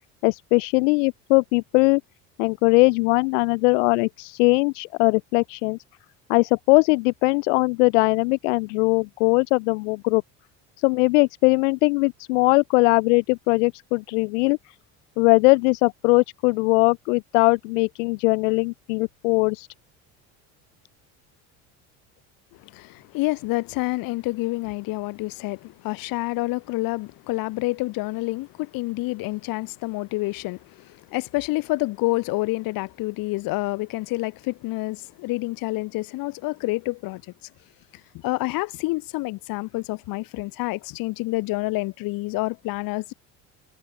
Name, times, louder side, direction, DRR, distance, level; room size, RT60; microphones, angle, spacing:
voice 1, 0.2-2.0 2.4-5.8 6.3-10.2 10.8-14.6 15.2-19.7, left 28 dB, 85° left, 1.5 m, -20 dB
voice 2, 22.6-37.2 38.1-43.1, left 21 dB, 70° left, 2.9 m, -28 dB
supercardioid pair, 95°, 36 cm